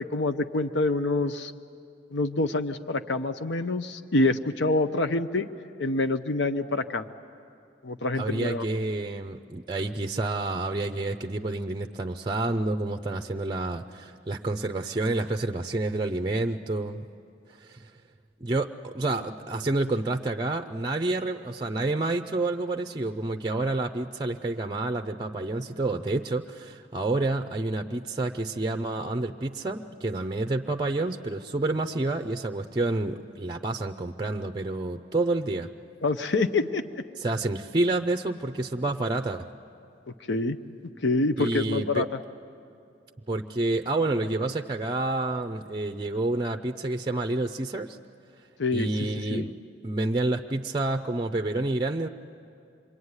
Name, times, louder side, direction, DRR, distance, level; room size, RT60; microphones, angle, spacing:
voice 1, 0.0-1.5 2.1-5.5 5.8-7.1 7.8-8.6 36.0-36.8 40.3-40.6 41.0-42.2 48.6-49.5, left 2 dB, 70° left, 9 dB, 0.8 m, -26 dB
voice 2, 8.1-17.0 17.6-17.9 18.4-35.7 37.2-39.5 41.4-42.0 43.3-48.0 48.7-49.6 49.8-52.1, right 2 dB, 25° right, 7 dB, 0.6 m, -29 dB
26.5 x 23.0 x 9.7 m, 2.5 s
head